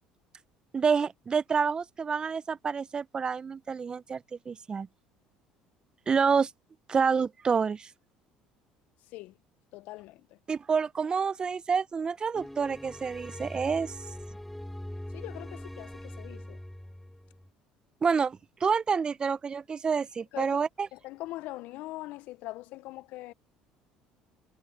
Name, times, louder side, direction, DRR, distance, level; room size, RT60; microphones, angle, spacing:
voice 1, 0.7-4.9 6.1-6.5 6.9-7.9 10.5-14.0 18.0-20.9, right 5 dB, 30° right, 0.7 m, -28 dB
voice 2, 9.7-10.4 15.1-16.6 20.3-20.6 20.9-23.3, left 18 dB, 70° left, 0.7 m, -42 dB
sound 1, 12.3-17.5, left 1 dB, 5° left, 4.0 m, -42 dB
supercardioid pair, 80°, 3 cm